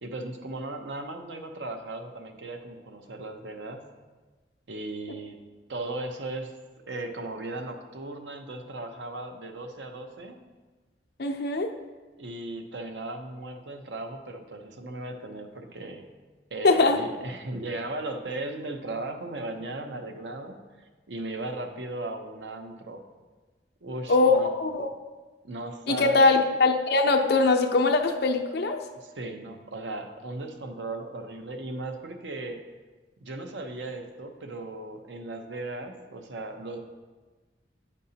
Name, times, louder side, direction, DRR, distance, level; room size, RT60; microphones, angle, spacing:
voice 1, 0.0-3.9 4.7-5.4 5.7-6.5 6.9-10.4 12.2-16.1 16.5-23.0 23.8-24.5 25.4-26.3 29.0-32.6 33.2-36.8, right 2 dB, 90° right, 5 dB, 0.7 m, -37 dB
voice 2, 11.2-11.7 16.6-17.0 24.1-24.9 25.9-28.8, left 3 dB, 65° left, 4 dB, 0.6 m, -22 dB
9.4 x 5.3 x 2.8 m, 1.3 s
head